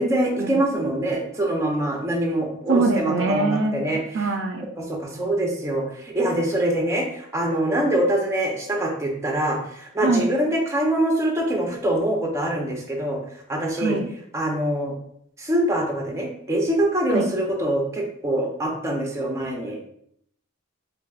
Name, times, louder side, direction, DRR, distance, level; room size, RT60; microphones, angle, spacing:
voice 1, 0.0-4.3 4.9-13.2 13.5-14.0 14.3-14.9 15.4-19.8, right 1 dB, 15° right, 0 dB, 0.6 m, -24 dB
voice 2, 2.7-3.8 4.1-4.7 10.0-10.3 13.8-14.1 17.1-17.3, right 3 dB, 60° right, 5 dB, 0.3 m, -22 dB
4.6 x 2.6 x 2.4 m, 0.71 s
head